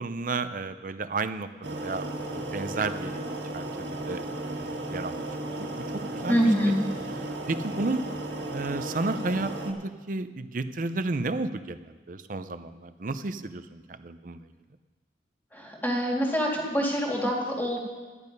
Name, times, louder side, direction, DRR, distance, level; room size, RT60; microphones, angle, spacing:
voice 1, 0.0-1.5 1.8-2.1 2.3-3.2 3.5-5.2 5.6-5.8 6.1-6.8 7.5-8.0 8.5-14.5, right 3 dB, 45° right, 11 dB, 0.6 m, -32 dB
sound 1, 1.6-9.7, right 1 dB, 80° right, 1.7 m, -35 dB
voice 2, 6.3-6.8 15.5-17.8, equal, 10° left, -2 dB, 2.2 m, -25 dB
12.5 x 10.5 x 5.3 m, 1.4 s
head